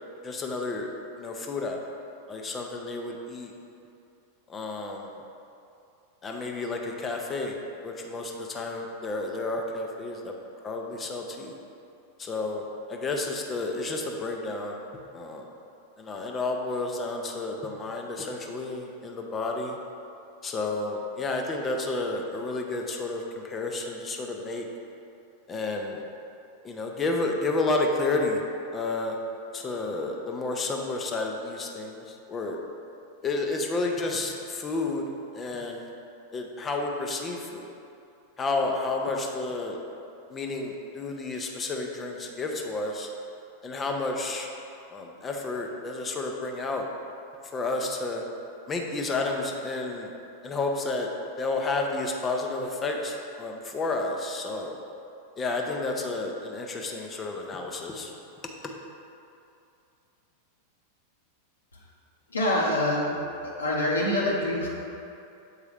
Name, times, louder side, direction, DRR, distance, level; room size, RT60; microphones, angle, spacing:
voice 1, 0.2-0.9 1.2-1.8 2.3-3.5 4.5-5.2 6.2-7.6 7.8-10.3 10.6-11.5 12.2-15.5 16.0-19.8 20.4-24.7 25.5-26.0 26.6-28.4 28.7-29.2 29.5-32.6 33.2-35.1 35.3-35.9 36.3-37.7 38.4-39.8 40.3-43.1 43.6-44.5 44.9-46.9 47.4-48.2 48.7-50.1 50.4-51.1 51.4-54.7 55.4-58.1 58.6-58.7, left 3 dB, 20° left, 1 dB, 0.6 m, -31 dB
voice 2, 62.3-63.2 63.4-64.7, left 1 dB, 75° left, -4 dB, 0.9 m, -25 dB
7.0 x 4.6 x 3.3 m, 2.6 s
figure-of-eight pair, 90°, 0 cm